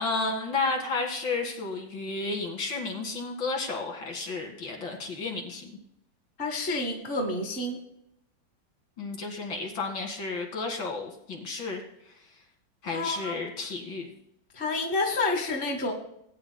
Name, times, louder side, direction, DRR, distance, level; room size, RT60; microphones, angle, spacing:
voice 1, 0.0-5.8 9.0-11.8 12.8-14.1, left 3 dB, 85° left, 1 dB, 2.8 m, -32 dB
voice 2, 6.4-7.8 12.9-13.4 14.5-15.9, left 2 dB, 35° left, 2 dB, 1.3 m, -29 dB
18.5 x 9.1 x 2.2 m, 0.77 s
omnidirectional pair, 2.1 m